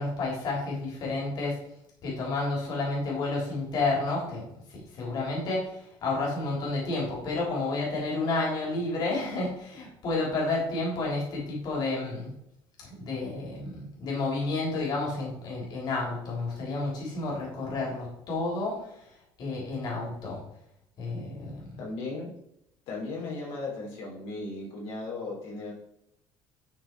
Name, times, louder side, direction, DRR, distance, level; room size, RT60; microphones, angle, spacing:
voice 1, 0.0-1.5 2.0-4.4 4.7-12.3 12.8-18.9 19.4-20.4 21.0-21.8, left 3 dB, 45° left, -3 dB, 3.6 m, -30 dB
voice 2, 21.8-22.3 22.9-25.7, left 3 dB, 70° left, -3 dB, 3.4 m, -36 dB
12.0 x 4.5 x 4.6 m, 0.78 s
cardioid pair, 160°, 10 cm